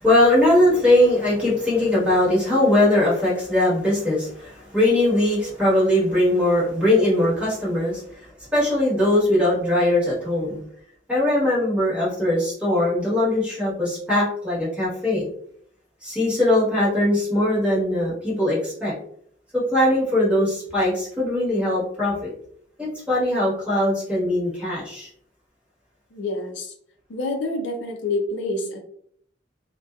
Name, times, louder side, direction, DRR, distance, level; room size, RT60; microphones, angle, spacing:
voice 1, 0.0-8.2 8.5-10.6 11.1-15.3 16.0-18.9 19.5-22.3 22.8-25.1, left 1 dB, 5° right, -8 dB, 1.2 m, -20 dB
voice 2, 26.1-26.7 27.1-28.8, left 2 dB, 70° left, 3 dB, 0.5 m, -27 dB
2.7 x 2.2 x 2.3 m, 0.66 s
head